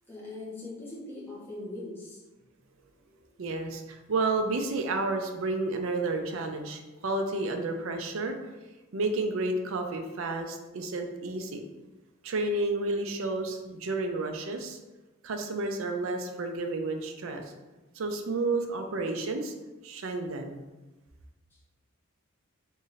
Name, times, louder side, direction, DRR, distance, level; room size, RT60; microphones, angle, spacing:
voice 1, 0.1-2.2, left 2 dB, 10° left, -8 dB, 1.1 m, -40 dB
voice 2, 3.4-8.4 8.9-11.6 12.2-14.8 15.2-17.4 18.0-19.5 19.8-20.6, right 2 dB, 70° right, 5 dB, 0.5 m, -31 dB
3.0 x 2.6 x 3.9 m, 1.1 s
head